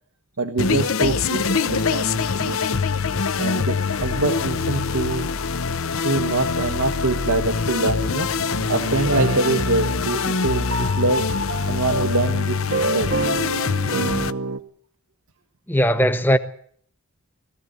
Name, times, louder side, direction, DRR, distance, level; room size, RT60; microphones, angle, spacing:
voice 1, 0.4-2.6 3.4-5.3 6.0-8.3 8.7-11.3 11.7-13.1, right 3 dB, 85° right, 1.5 m, -24 dB
sound 1, 0.6-14.3, left 5 dB, 70° left, 0.8 m, -24 dB
sound 2, 8.4-14.6, right 3 dB, 70° right, 1.2 m, -29 dB
voice 2, 15.7-16.4, equal, 10° left, 1.2 m, -18 dB
20.5 x 14.5 x 9.4 m
head